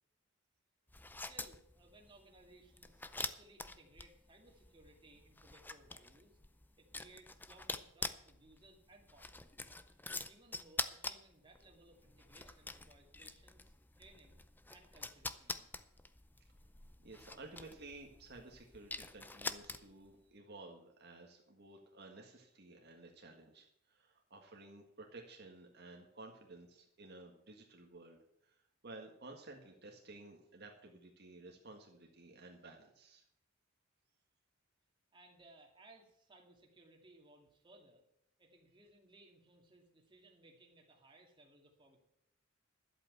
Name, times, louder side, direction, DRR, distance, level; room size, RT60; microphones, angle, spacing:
sound 1, 0.9-20.1, left 3 dB, 10° left, 0.5 m, -46 dB
voice 1, 1.1-6.4 6.8-9.5 10.3-14.4 14.7-15.7 35.1-38.0 38.4-42.0, right 2 dB, 25° right, 0 dB, 2.3 m, -63 dB
voice 2, 17.0-23.7 23.9-28.2 28.8-33.2, right 2 dB, 55° right, 1 dB, 1.7 m, -54 dB
11.5 x 8.1 x 7.9 m, 0.76 s
head